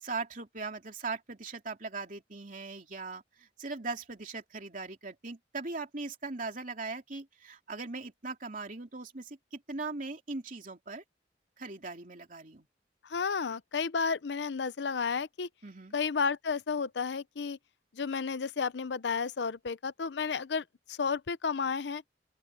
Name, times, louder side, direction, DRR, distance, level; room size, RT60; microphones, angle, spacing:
voice 1, 0.0-11.0 11.6-12.7 15.6-15.9, right 3 dB, 45° right, 2.9 m, -40 dB
voice 2, 13.0-15.5 15.9-17.6 17.9-22.0, left 5 dB, 70° left, 0.6 m, -32 dB
open air
head